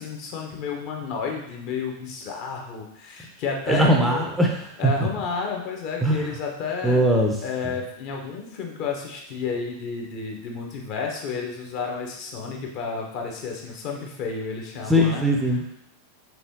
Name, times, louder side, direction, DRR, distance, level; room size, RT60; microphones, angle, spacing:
voice 1, 0.0-4.2 4.8-7.0 7.4-15.2, left 5 dB, 45° left, 1 dB, 0.8 m, -31 dB
voice 2, 3.7-4.6 4.8-4.9 6.0-6.3 6.8-7.4 7.6-7.7 14.9-15.7, equal, 5° right, 0 dB, 0.5 m, -20 dB
4.6 x 3.4 x 2.7 m, 0.78 s
figure-of-eight pair, 90°, 0 cm